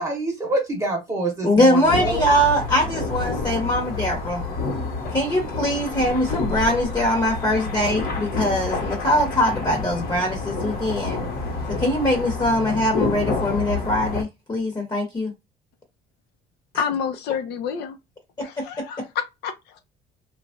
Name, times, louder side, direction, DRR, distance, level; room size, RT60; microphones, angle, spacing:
voice 1, 0.0-2.3, right 2 dB, 20° right, 0.9 m, -26 dB
voice 2, 1.4-4.4 5.1-11.2 11.7-15.3 18.8-18.9, left 1 dB, 25° left, 1.0 m, -22 dB
sound 1, 1.8-14.2, left 3 dB, 65° left, 1.0 m, -28 dB
voice 3, 16.7-18.0 18.4-19.8, left 7 dB, 80° left, 0.7 m, -29 dB
3.0 x 2.4 x 2.5 m
cardioid pair, 110°, 17 cm